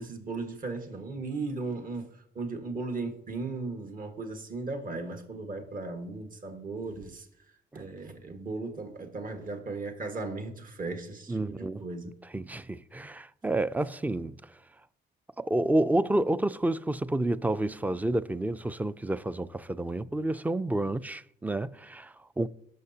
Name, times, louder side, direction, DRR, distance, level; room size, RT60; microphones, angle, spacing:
voice 1, 0.0-7.3 7.7-12.1, right 3 dB, 45° right, 1.6 m, -36 dB
voice 2, 11.3-11.8 12.3-14.4 15.4-22.5, right 1 dB, 10° right, 0.4 m, -29 dB
17.5 x 6.7 x 2.8 m
cardioid pair, 90°, 20 cm